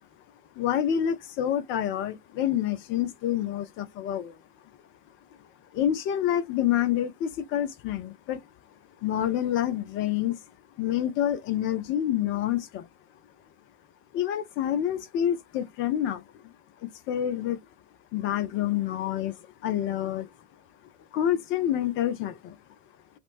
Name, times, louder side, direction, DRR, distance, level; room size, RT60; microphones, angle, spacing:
voice 1, 0.6-4.4 5.7-8.4 9.0-10.4 10.8-12.9 14.1-16.2 16.8-17.6 18.1-20.3 21.1-22.6, left 11 dB, 30° left, 0.4 m, -27 dB
2.9 x 2.1 x 2.4 m
figure-of-eight pair, 75°, 40 cm